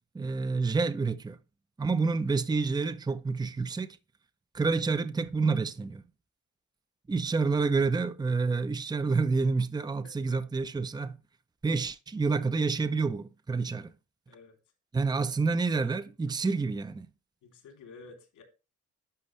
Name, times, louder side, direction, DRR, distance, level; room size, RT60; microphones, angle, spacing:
voice 1, 0.1-1.4 1.8-4.0 4.5-6.0 7.1-11.2 11.6-13.9 14.9-17.1, right 4 dB, 15° right, 0.6 m, -28 dB
voice 2, 10.0-10.4 14.3-14.6 17.4-18.4, left 4 dB, 85° left, 3.2 m, -52 dB
11.5 x 5.2 x 3.2 m
cardioid pair, 90°, 30 cm